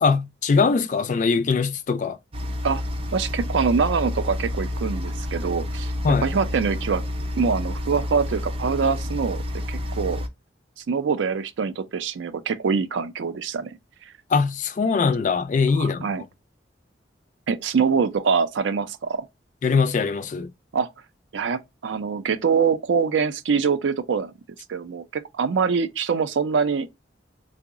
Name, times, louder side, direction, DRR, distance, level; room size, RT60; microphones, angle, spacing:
voice 1, 0.0-2.2 6.0-6.3 14.3-16.3 19.6-20.5, left 5 dB, 45° left, 0.3 m, -22 dB
sound 1, 2.3-10.3, left 1 dB, 30° right, 0.5 m, -29 dB
voice 2, 3.1-5.9 6.2-7.0 7.4-9.4 9.7-10.2 10.9-13.8 15.8-16.2 17.5-19.2 20.7-20.9 21.3-24.3 24.7-26.9, right 5 dB, 85° right, 0.4 m, -24 dB
3.7 x 2.0 x 3.5 m
head